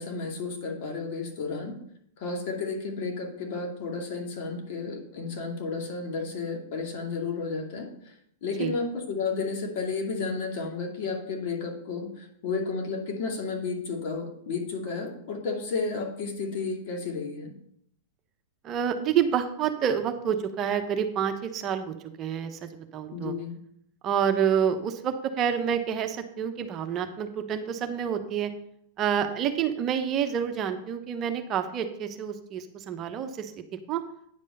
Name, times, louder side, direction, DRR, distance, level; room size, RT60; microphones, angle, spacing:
voice 1, 0.0-1.7 2.2-8.1 8.4-17.5 23.1-23.6, left 4 dB, 55° left, 1 dB, 2.4 m, -32 dB
voice 2, 18.6-23.3 24.0-28.5 29.0-33.5 33.9-34.0, right 8 dB, 35° right, 7 dB, 0.9 m, -28 dB
9.4 x 5.3 x 5.4 m, 0.70 s
hypercardioid pair, 120°, 0 cm